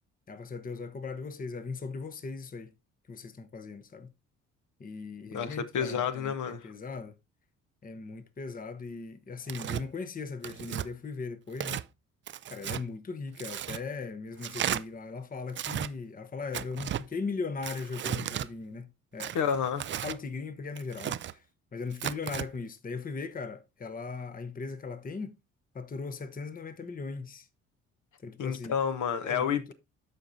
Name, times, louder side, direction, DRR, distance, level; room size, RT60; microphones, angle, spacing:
voice 1, 0.3-2.7 3.1-4.1 4.8-7.2 7.8-11.8 12.5-19.3 20.0-21.4 21.7-25.4 25.7-27.5 28.2-28.7 29.1-29.7, left 4 dB, 25° left, 0.9 m, -38 dB
voice 2, 5.3-6.7 19.3-19.9 28.4-29.7, left 7 dB, 50° left, 1.0 m, -30 dB
Tearing, 9.5-9.8 10.4-10.9 11.5-11.9 12.3-12.8 13.4-13.8 14.4-14.8 15.5-15.9 16.5-17.0 17.6-18.5 19.2-20.2 20.8-21.3 21.9-22.5, right 11 dB, 30° right, 0.4 m, -34 dB
13.0 x 4.9 x 2.6 m
hypercardioid pair, 45°, 37 cm